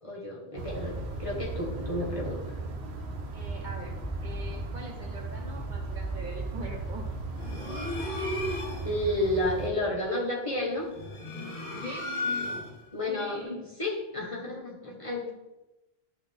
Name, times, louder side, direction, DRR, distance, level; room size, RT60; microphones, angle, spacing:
voice 1, 0.0-2.4 8.8-10.9 12.9-15.3, left 1 dB, 30° left, -2 dB, 1.4 m, -31 dB
sound 1, 0.6-9.7, right 3 dB, 80° right, 1.1 m, -36 dB
voice 2, 3.3-7.1 11.8-12.4 13.1-13.6, equal, 50° right, 1 dB, 1.1 m, -42 dB
sound 2, 7.4-9.0 10.8-12.9, left 2 dB, 50° left, 1.4 m, -34 dB
11.0 x 4.0 x 3.5 m, 0.98 s
omnidirectional pair, 1.1 m